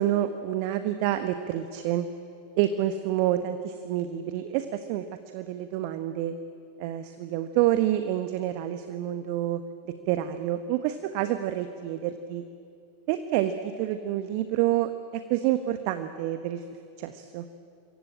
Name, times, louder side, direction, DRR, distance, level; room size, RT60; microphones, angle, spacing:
voice 1, 0.0-2.1 2.6-5.0 5.3-6.3 6.8-9.6 10.1-12.4 13.1-13.5 13.8-16.6 17.0-17.4, right 12 dB, 45° right, 9 dB, 1.4 m, -28 dB
27.5 x 23.5 x 8.9 m, 2.4 s
figure-of-eight pair, 90°, 0 cm